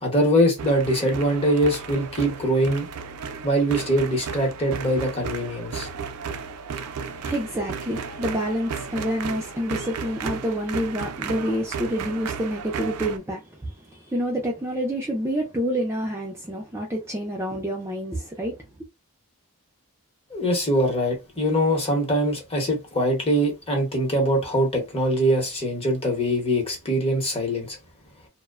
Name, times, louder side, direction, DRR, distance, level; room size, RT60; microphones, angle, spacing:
voice 1, 0.0-2.9 3.4-5.9 20.3-27.8, equal, 25° left, 0.8 m, -23 dB
sound 1, 0.6-13.2, right 6 dB, 80° right, 0.4 m, -34 dB
voice 2, 7.0-18.6, equal, 10° right, 0.4 m, -28 dB
2.5 x 2.1 x 2.3 m
head